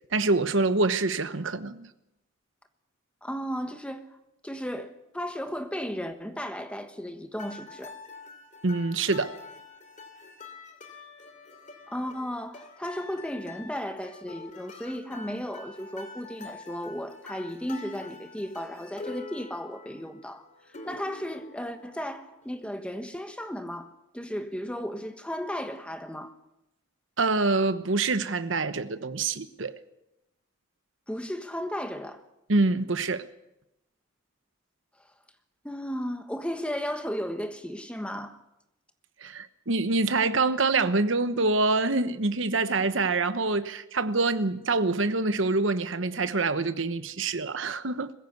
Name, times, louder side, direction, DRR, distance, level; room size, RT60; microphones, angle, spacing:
voice 1, 0.1-1.9 8.6-9.4 27.2-29.8 32.5-33.3 39.2-48.1, right 3 dB, 65° right, 1.1 m, -26 dB
voice 2, 3.2-4.1 4.4-7.9 11.9-23.9 24.1-26.3 31.1-32.2 35.6-38.4, equal, 5° left, 1.3 m, -35 dB
sound 1, 7.4-22.5, left 4 dB, 35° left, 2.9 m, -46 dB
21.5 x 15.5 x 8.1 m
head